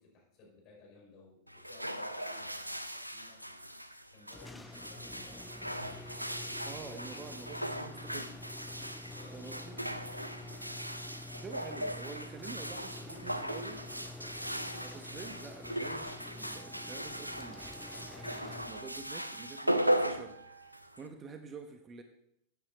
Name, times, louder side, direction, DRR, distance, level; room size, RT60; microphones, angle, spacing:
voice 1, 0.0-6.1 7.1-7.5 9.0-10.3 12.6-13.2, left 3 dB, 40° left, -1 dB, 5.3 m, -59 dB
sound 1, 1.5-21.1, equal, 90° right, 0.6 m, -38 dB
sound 2, 4.3-19.2, left 2 dB, 10° left, 0.5 m, -48 dB
voice 2, 6.6-8.4 9.3-9.7 11.4-13.9 14.4-17.7 18.2-20.4 21.0-22.0, right 5 dB, 25° right, 7 dB, 1.1 m, -48 dB
Wind instrument woodwind instrument, 16.5-20.9, right 5 dB, 65° right, 1.1 m, -54 dB
15.0 x 8.9 x 4.3 m, 0.78 s
figure-of-eight pair, 90°, 0 cm